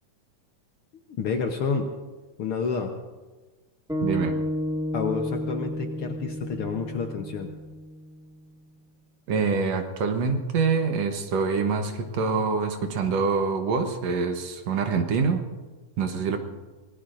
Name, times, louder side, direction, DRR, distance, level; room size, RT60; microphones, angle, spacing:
voice 1, 1.2-1.9 2.4-2.9 4.9-7.5, left 5 dB, 65° left, 3 dB, 1.5 m, -29 dB
sound 1, 3.9-8.3, equal, ahead, 1.0 m, -31 dB
voice 2, 4.0-4.3 9.3-15.4 16.0-16.4, right 5 dB, 65° right, 5 dB, 2.1 m, -25 dB
25.5 x 19.5 x 2.6 m, 1.3 s
omnidirectional pair, 3.4 m